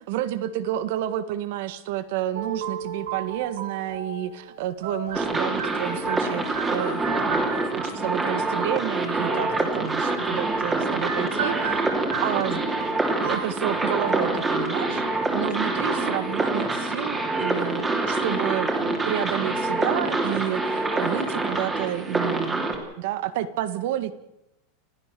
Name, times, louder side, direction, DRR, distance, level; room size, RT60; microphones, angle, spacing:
voice 1, 0.1-11.9 12.2-12.6 13.2-18.8 19.0-24.1, right 12 dB, 55° right, 13 dB, 1.7 m, -30 dB
sound 1, 2.3-8.2 9.2-16.1, right 6 dB, 85° right, 5.3 m, -36 dB
sound 2, 5.1-22.8, right 2 dB, 10° right, 3.1 m, -26 dB
28.5 x 15.0 x 6.9 m, 0.85 s
supercardioid pair, 175°, 0 cm